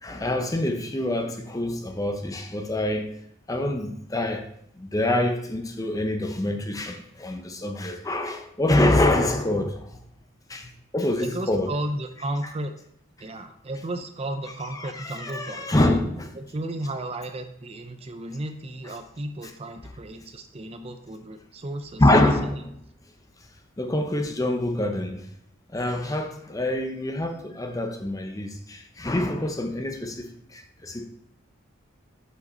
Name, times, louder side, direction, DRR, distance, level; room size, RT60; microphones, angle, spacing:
voice 1, 0.0-3.1 3.5-4.4 4.8-10.0 10.5-11.7 14.7-16.4 22.0-22.8 23.8-25.3 25.7-31.1, left 1 dB, 15° left, 0.6 m, -25 dB
voice 2, 11.2-12.7 13.2-15.8 16.4-22.0, right 1 dB, 30° right, 0.5 m, -34 dB
6.7 x 4.9 x 4.3 m
head